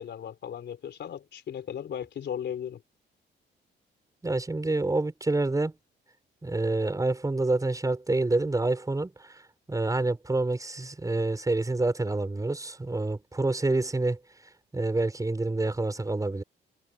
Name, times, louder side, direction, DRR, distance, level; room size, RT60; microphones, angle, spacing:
voice 1, 0.0-2.8, left 9 dB, 60° left, 3.9 m, -36 dB
voice 2, 4.2-5.7 6.4-9.4 9.7-14.2 14.7-16.4, right 2 dB, 15° right, 6.0 m, -27 dB
cardioid pair, 90°, 20 cm